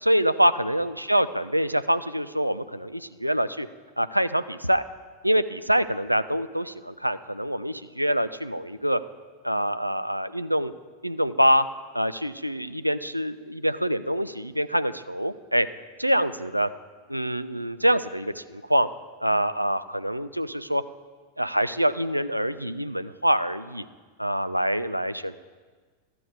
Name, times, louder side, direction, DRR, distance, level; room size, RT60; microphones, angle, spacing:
voice 1, 0.0-3.7 4.0-4.8 5.2-9.0 9.4-10.7 11.0-11.7 11.9-15.7 16.0-16.7 17.1-18.9 19.2-20.8 21.4-23.8 24.2-25.4, equal, 90° right, 13 dB, 0.4 m, -25 dB
13.0 x 7.8 x 4.7 m, 1.5 s
figure-of-eight pair, 90°, 0 cm